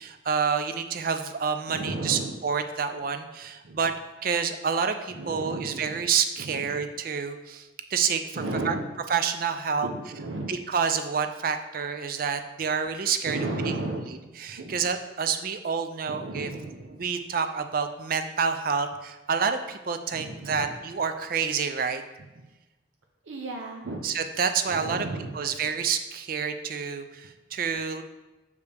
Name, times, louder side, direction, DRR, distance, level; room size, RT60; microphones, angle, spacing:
voice 1, 0.0-3.9 4.2-8.8 9.1-9.9 10.5-14.0 14.4-16.5 17.0-22.0 24.0-25.1 25.3-28.0, right 6 dB, 45° right, 8 dB, 0.4 m, -28 dB
voice 2, 1.7-2.4 3.6-3.8 5.1-6.0 6.4-6.8 8.3-8.9 9.8-10.5 13.3-14.8 16.1-17.0 20.1-20.7 23.3-24.0 24.7-25.4 25.7-25.8, right 2 dB, 80° right, 1 dB, 0.7 m, -34 dB
6.7 x 4.9 x 3.4 m, 1.1 s
head